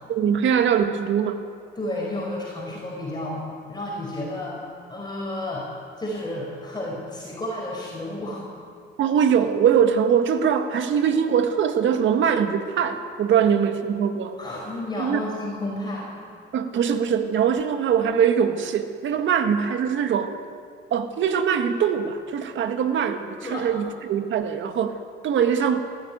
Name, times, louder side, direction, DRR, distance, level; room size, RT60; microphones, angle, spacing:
voice 1, 0.1-1.5 9.0-14.4 15.0-15.2 16.5-20.3 20.9-25.8, right 7 dB, 75° right, 8 dB, 1.7 m, -22 dB
voice 2, 1.8-5.7 6.0-8.5 14.4-16.1 23.4-23.7, left 1 dB, 20° left, -4 dB, 5.3 m, -31 dB
21.0 x 14.0 x 9.5 m, 2.3 s
cardioid pair, 90°, 20 cm